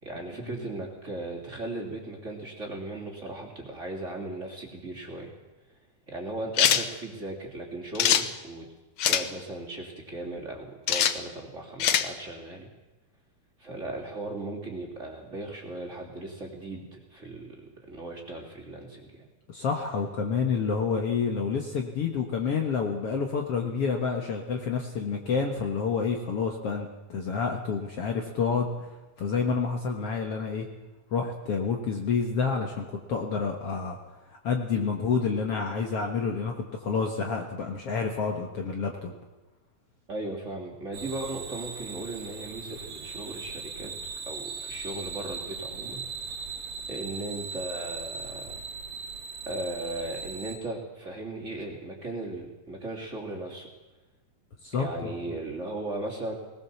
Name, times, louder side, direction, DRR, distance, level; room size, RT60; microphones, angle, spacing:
voice 1, 0.0-5.3 6.1-8.7 9.0-12.7 13.6-19.2 40.1-43.9 44.2-46.0 46.3-48.6 49.5-53.7 54.8-56.3, right 2 dB, 20° right, -2 dB, 3.2 m, -37 dB
sound 1, 6.6-6.9 8.0-8.3 9.0-9.3 10.9-11.2 11.8-12.1, left 9 dB, 70° left, 1.3 m, -22 dB
voice 2, 19.5-28.9 29.2-30.7 31.1-34.0 34.3-39.1 54.6-55.2, left 5 dB, 55° left, 2 dB, 2.1 m, -29 dB
sound 2, 40.9-50.6, right 5 dB, 45° right, 3.0 m, -39 dB
20.0 x 19.5 x 7.1 m, 1.1 s
omnidirectional pair, 3.7 m